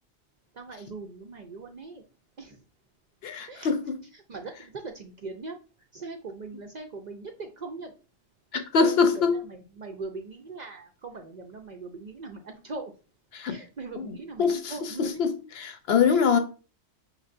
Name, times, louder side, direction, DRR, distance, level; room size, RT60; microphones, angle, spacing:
voice 1, 0.6-2.0 2.4-2.5 3.5-3.7 4.3-4.5 5.0-5.6 5.9-7.9 8.8-9.2 9.8-12.9 13.5-15.2, right 3 dB, 55° right, 0.5 m, -40 dB
voice 2, 3.2-3.9 8.5-9.4 13.3-13.6 14.0-16.4, left 5 dB, 65° left, 0.8 m, -24 dB
5.4 x 3.2 x 2.5 m
omnidirectional pair, 1.1 m